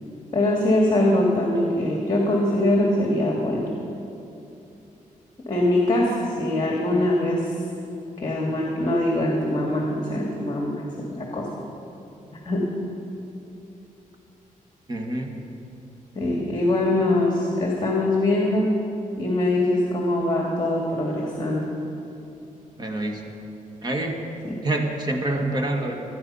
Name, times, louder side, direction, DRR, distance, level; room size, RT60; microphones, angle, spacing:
voice 1, 0.3-3.7 5.5-7.5 8.2-10.9 11.2-11.5 12.5-12.7 16.2-18.7 19.2-21.6 24.4-24.6, left 1 dB, 30° left, -1 dB, 2.1 m, -22 dB
voice 2, 14.9-15.4 22.8-23.2 23.8-24.2 24.6-26.0, right 2 dB, 30° right, 3 dB, 1.8 m, -26 dB
25.5 x 9.5 x 5.5 m, 2.8 s
wide cardioid pair, 140°, 14 cm